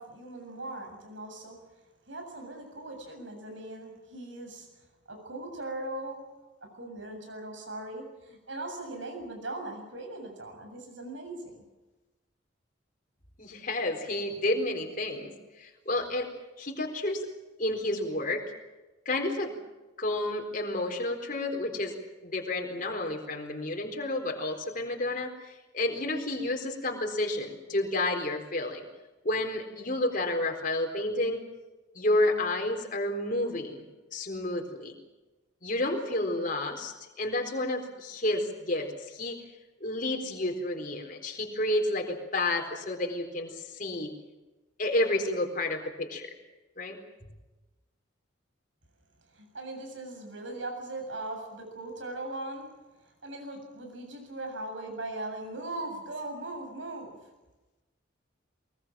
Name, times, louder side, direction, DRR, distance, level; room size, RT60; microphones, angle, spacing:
voice 1, 0.0-1.6 2.1-6.2 6.6-11.6 49.3-52.7 53.0-57.1, right 2 dB, 75° right, 4 dB, 7.7 m, -39 dB
voice 2, 13.4-15.3 15.6-17.3 17.6-18.4 19.1-19.5 20.0-22.0 22.2-28.9 29.2-31.4 31.9-33.8 34.1-34.9 35.6-39.4 39.8-44.1 44.8-46.3 46.8-47.0, left 1 dB, 45° left, 2 dB, 4.1 m, -30 dB
23.0 x 22.0 x 7.6 m, 1.1 s
head